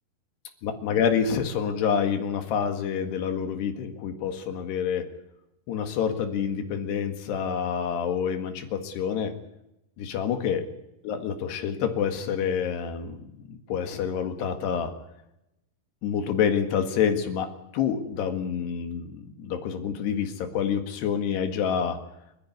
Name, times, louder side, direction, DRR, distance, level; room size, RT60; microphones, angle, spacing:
voice 1, 0.6-5.1 5.7-9.3 10.0-10.6 11.0-14.9 16.0-22.0, left 7 dB, 80° left, 6 dB, 4.0 m, -27 dB
29.0 x 11.0 x 9.5 m, 0.86 s
omnidirectional pair, 4.7 m